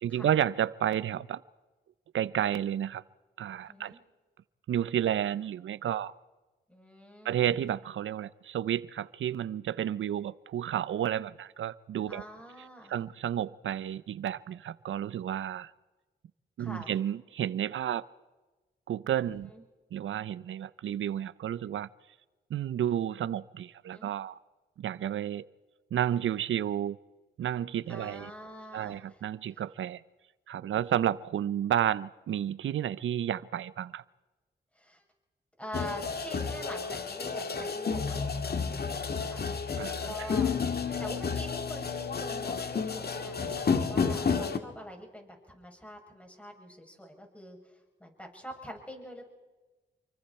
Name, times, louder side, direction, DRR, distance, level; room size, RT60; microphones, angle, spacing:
voice 1, 0.0-1.4 2.1-3.0 3.4-4.0 4.7-6.1 7.2-12.2 12.9-15.7 16.6-18.1 18.9-19.5 19.9-21.9 22.5-24.4 24.8-25.5 25.9-27.0 27.4-28.3 28.7-30.0 30.5-34.0 39.8-40.3, right 10 dB, 85° right, 0.7 m, -31 dB
voice 2, 3.7-4.0 6.7-7.5 12.1-12.9 16.6-16.9 19.3-19.6 23.9-24.1 27.9-29.0 34.8-35.0 35.6-39.4 39.9-40.5 41.0-49.3, equal, 5° left, 7.4 m, -45 dB
sound 1, 35.7-44.6, left 5 dB, 55° left, 1.8 m, -31 dB
29.0 x 24.0 x 4.4 m
cardioid pair, 60°, 20 cm